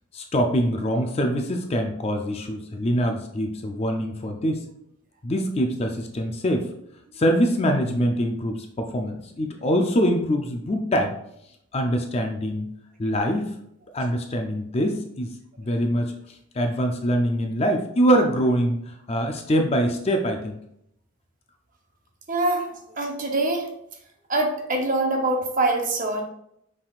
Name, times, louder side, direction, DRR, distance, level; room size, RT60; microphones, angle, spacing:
voice 1, 0.1-4.6 5.2-6.7 7.2-11.1 11.7-12.7 13.0-13.5 13.9-16.1 16.5-20.6, equal, 30° left, 4 dB, 0.4 m, -24 dB
voice 2, 22.3-22.7 23.0-23.7 24.3-26.2, right 2 dB, 40° right, 2 dB, 0.7 m, -24 dB
5.6 x 3.4 x 2.4 m, 0.75 s
head